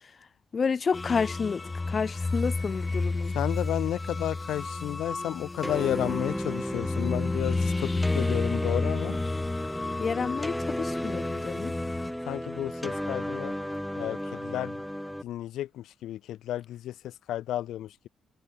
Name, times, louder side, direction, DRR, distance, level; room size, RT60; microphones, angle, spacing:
voice 1, 0.5-3.3 10.0-11.7, left 5 dB, 40° left, 1.4 m, -30 dB
sound 1, 0.9-12.1, left 3 dB, 20° left, 2.2 m, -32 dB
voice 2, 3.3-9.2 12.3-13.5 13.9-14.8 15.2-18.1, left 12 dB, 80° left, 1.3 m, -32 dB
sound 2, 5.6-15.2, equal, 5° left, 4.5 m, -34 dB
cardioid pair, 90°, 0 cm